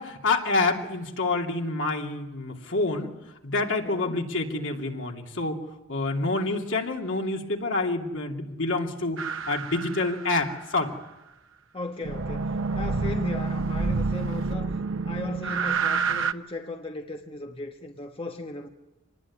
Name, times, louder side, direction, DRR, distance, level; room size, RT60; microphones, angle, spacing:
voice 1, 0.0-3.1 3.4-5.6 5.9-10.9, left 3 dB, 70° left, 2.7 m, -27 dB
voice 2, 3.8-4.2 11.7-14.7 15.0-18.7, left 2 dB, 30° left, 1.3 m, -37 dB
sound 1, 9.2-10.6 12.0-16.3, right 4 dB, 75° right, 0.9 m, -28 dB
25.5 x 19.5 x 9.8 m
head